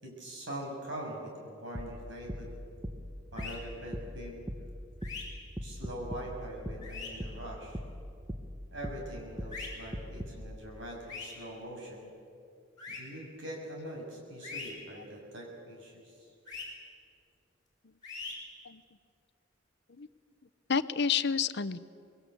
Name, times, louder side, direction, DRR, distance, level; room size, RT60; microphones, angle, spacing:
voice 1, 0.0-2.6 3.3-4.4 5.6-7.8 8.7-12.1 12.9-16.3, equal, 65° right, -1 dB, 7.2 m, -43 dB
sound 1, 1.7-10.5, equal, 15° right, 1.3 m, -41 dB
sound 2, 3.4-3.6 5.0-5.2 6.8-7.1 9.5-9.7 11.1-11.3 12.8-13.0 14.4-14.7 16.5-16.6 18.0-18.3, left 5 dB, 20° left, 6.8 m, -41 dB
voice 2, 20.7-21.8, left 6 dB, 60° left, 14 dB, 0.7 m, -29 dB
25.5 x 21.5 x 8.4 m, 2.4 s
head